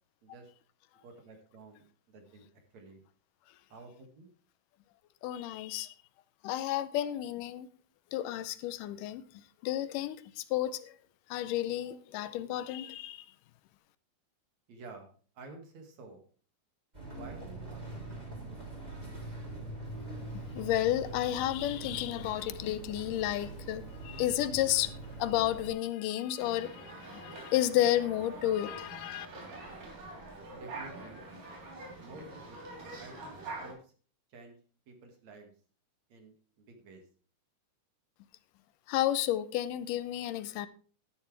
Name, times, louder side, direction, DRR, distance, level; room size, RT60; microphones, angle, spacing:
voice 1, 0.2-0.5 1.0-2.4 2.7-3.0 3.7-4.3 14.7-15.1 15.3-16.2 17.1-17.9 30.5-31.2 32.0-32.6 33.0-33.9 34.3-34.5 34.9-35.5 36.1-37.0, right 3 dB, 60° right, 3.2 m, -51 dB
voice 2, 5.2-5.9 6.4-7.7 8.1-9.2 9.6-10.9 11.3-13.3 20.6-29.3 38.9-40.7, left 13 dB, 80° left, 2.2 m, -32 dB
sound 1, 16.9-25.7, right 2 dB, 10° right, 3.3 m, -43 dB
sound 2, 26.4-33.7, right 2 dB, 85° right, 5.3 m, -45 dB
12.5 x 10.5 x 3.4 m
omnidirectional pair, 3.8 m